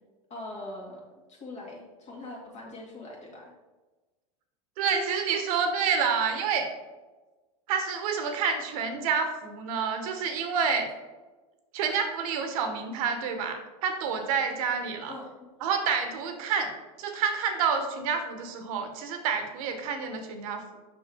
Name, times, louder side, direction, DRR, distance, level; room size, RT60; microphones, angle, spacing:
voice 1, 0.3-3.5 15.1-15.5, left 2 dB, 35° left, -1 dB, 2.1 m, -42 dB
voice 2, 4.8-6.7 7.7-10.9 11.7-15.1 15.6-20.6, right 6 dB, 70° right, 6 dB, 1.2 m, -28 dB
6.2 x 6.1 x 3.5 m, 1.2 s
supercardioid pair, 125°, 19 cm